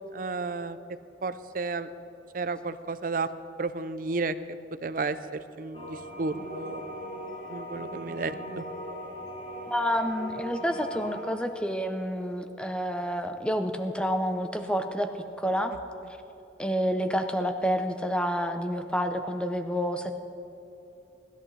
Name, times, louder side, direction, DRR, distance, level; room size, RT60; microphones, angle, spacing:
voice 1, 0.1-0.8 1.2-1.9 2.3-3.3 3.6-4.3 4.8-5.2 5.6-6.8 7.5-8.6, right 3 dB, 45° right, 12 dB, 0.5 m, -32 dB
sound 1, 5.7-11.2, equal, 40° left, 3.3 m, -39 dB
voice 2, 9.7-15.1 15.4-15.7 16.6-20.2, equal, 5° left, 7 dB, 0.6 m, -29 dB
19.0 x 13.0 x 3.3 m, 2.8 s
head